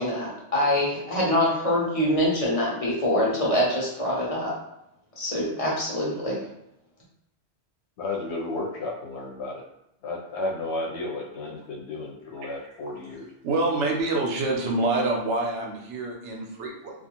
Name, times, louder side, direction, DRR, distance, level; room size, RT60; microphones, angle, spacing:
voice 1, 0.0-4.5 5.2-6.4, left 1 dB, 35° left, -5 dB, 0.7 m, -24 dB
voice 2, 8.0-9.6 10.0-13.3, left 2 dB, 75° left, -1 dB, 0.9 m, -33 dB
voice 3, 13.4-16.9, right 2 dB, 90° right, 0 dB, 0.9 m, -26 dB
2.5 x 2.4 x 2.9 m, 0.81 s
omnidirectional pair, 1.1 m